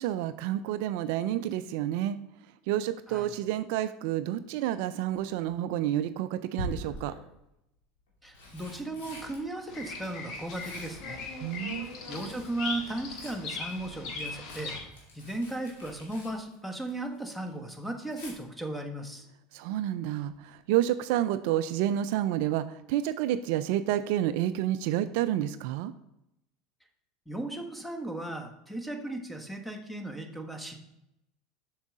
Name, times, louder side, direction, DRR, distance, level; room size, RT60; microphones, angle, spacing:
voice 1, 0.0-2.2 2.7-7.1 11.4-11.9 19.5-25.9, right 12 dB, 65° right, 13 dB, 0.3 m, -29 dB
Tearing, 5.0-5.5 6.5-7.3 8.1-12.6 12.9-17.2 17.5-18.3 20.2-20.5 20.8-20.9, left 1 dB, 75° left, 2.4 m, -45 dB
voice 2, 8.2-11.2 12.1-14.8 15.1-19.2 27.3-30.8, right 2 dB, 5° left, 5 dB, 1.2 m, -36 dB
Bird vocalization bird call bird song, 9.7-14.8, left 4 dB, 50° left, 1.6 m, -39 dB
7.0 x 6.3 x 3.7 m, 0.84 s
hypercardioid pair, 80°, 0 cm